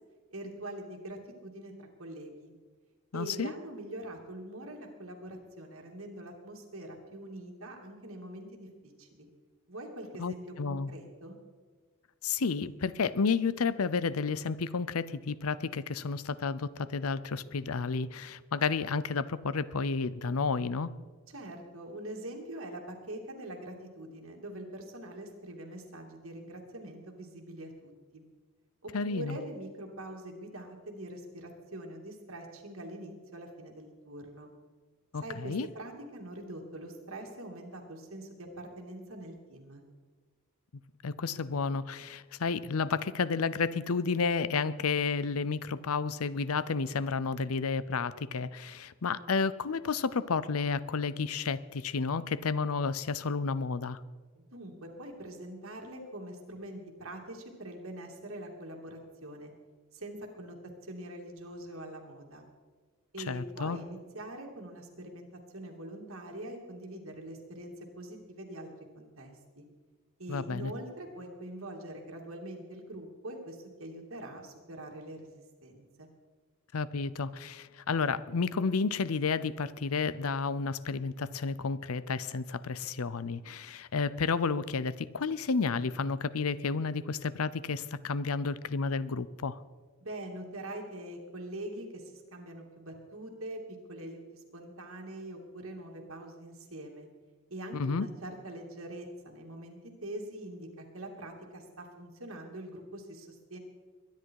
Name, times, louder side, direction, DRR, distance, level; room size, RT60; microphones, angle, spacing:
voice 1, 0.3-2.5 3.1-9.3 9.7-11.4 21.3-28.2 28.8-34.5 35.1-39.8 54.3-59.5 59.9-62.5 63.1-65.3 65.5-69.6 70.2-76.1 90.0-93.6 93.9-97.1 97.5-103.6, right 1 dB, 70° right, 2 dB, 2.8 m, -44 dB
voice 2, 3.1-3.5 10.2-10.9 12.2-20.9 28.9-29.4 35.1-35.7 41.0-54.0 63.3-63.8 70.3-70.7 76.7-89.6 97.7-98.1, left 4 dB, 90° left, 18 dB, 0.6 m, -31 dB
22.5 x 10.5 x 4.8 m, 1.5 s
head